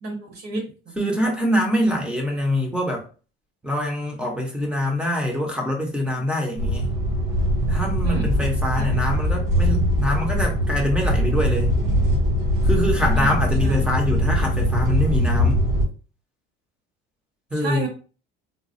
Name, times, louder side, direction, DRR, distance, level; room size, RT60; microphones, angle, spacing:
voice 1, 0.0-0.9 8.0-8.3 8.8-8.9 13.1-13.9 17.5-17.9, right 3 dB, 50° right, 1.2 m, -32 dB
voice 2, 1.0-3.1 3.6-6.9 7.7-11.7 12.6-15.6 17.5-17.9, left 1 dB, 5° right, 0.7 m, -24 dB
sound 1, 6.6-15.8, equal, 70° right, 1.6 m, -21 dB
4.0 x 2.2 x 2.5 m
cardioid pair, 160°, 21 cm